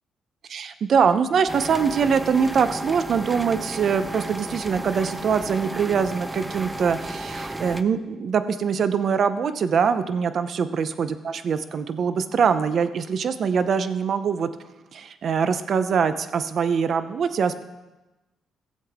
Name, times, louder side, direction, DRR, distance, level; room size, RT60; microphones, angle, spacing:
voice 1, 0.5-14.5 14.9-17.6, right 6 dB, 55° right, 12 dB, 0.7 m, -23 dB
sound 1, 1.5-7.8, right 1 dB, 15° right, 0.6 m, -33 dB
16.5 x 7.6 x 3.6 m, 1.1 s
cardioid pair, 90°, 0 cm